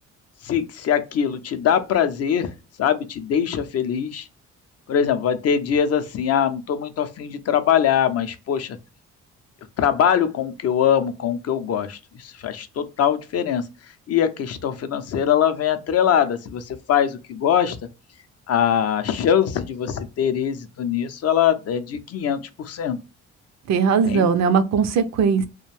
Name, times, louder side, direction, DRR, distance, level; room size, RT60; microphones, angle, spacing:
voice 1, 0.4-2.5 2.8-4.3 4.9-8.8 9.8-13.7 14.1-17.8 18.5-23.0 24.0-24.3, left 8 dB, 55° left, 0.5 m, -22 dB
voice 2, 23.7-25.5, right 6 dB, 65° right, 0.5 m, -19 dB
2.5 x 2.1 x 3.1 m
cardioid pair, 90°, 30 cm